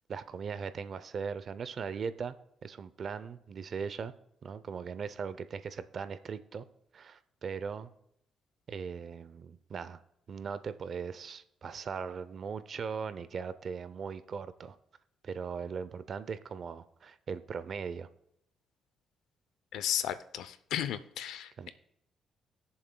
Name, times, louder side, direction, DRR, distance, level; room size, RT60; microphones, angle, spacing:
voice 1, 0.1-2.4 2.6-4.1 4.4-6.7 6.9-7.9 8.7-10.0 10.3-14.8 15.2-18.1 21.6-21.7, right 6 dB, 50° right, 13 dB, 0.6 m, -39 dB
voice 2, 19.7-21.7, left 10 dB, 80° left, 13 dB, 0.6 m, -34 dB
19.5 x 7.1 x 2.3 m, 0.75 s
cardioid pair, 90°, 0 cm